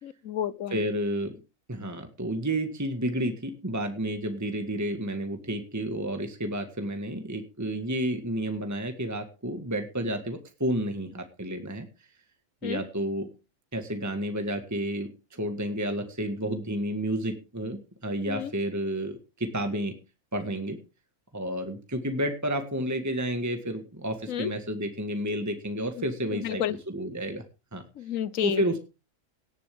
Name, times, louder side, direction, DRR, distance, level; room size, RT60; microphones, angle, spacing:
voice 1, 0.0-0.8 12.6-12.8 18.3-18.5 24.3-24.5 26.0-26.1 26.3-26.8 27.9-28.6, left 10 dB, 75° left, 1.3 m, -31 dB
voice 2, 0.7-1.3 1.7-11.9 12.6-13.3 13.7-19.9 20.3-20.8 21.3-27.4 27.7-27.8 28.4-28.8, right 1 dB, 15° right, 1.6 m, -31 dB
18.0 x 11.0 x 3.6 m
omnidirectional pair, 1.4 m